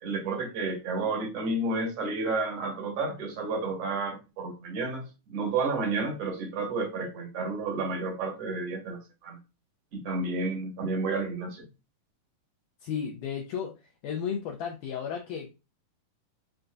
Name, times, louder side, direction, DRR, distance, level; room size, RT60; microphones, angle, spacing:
voice 1, 0.0-5.0 5.3-9.4 9.9-11.6, right 3 dB, 60° right, 1 dB, 1.6 m, -31 dB
voice 2, 12.8-13.7 14.0-15.5, left 7 dB, 85° left, 1 dB, 1.8 m, -33 dB
7.5 x 2.6 x 2.3 m, 0.28 s
omnidirectional pair, 4.3 m